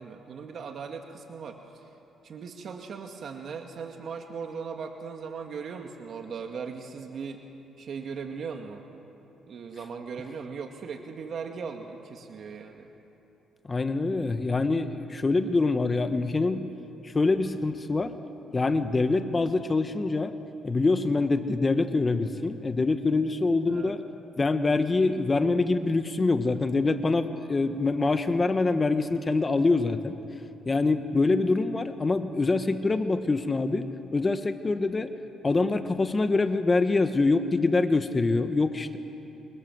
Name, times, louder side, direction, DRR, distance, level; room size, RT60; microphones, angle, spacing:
voice 1, 0.0-1.9 2.2-7.4 7.8-8.9 9.5-12.9 23.7-23.9, right 5 dB, 60° right, 4 dB, 2.1 m, -38 dB
voice 2, 13.7-16.7 17.0-18.1 18.5-20.4 20.6-24.0 24.4-30.1 30.7-35.1 35.4-39.0, left 3 dB, 25° left, 9 dB, 1.3 m, -25 dB
28.0 x 26.0 x 7.9 m, 2.9 s
cardioid pair, 90°, 0 cm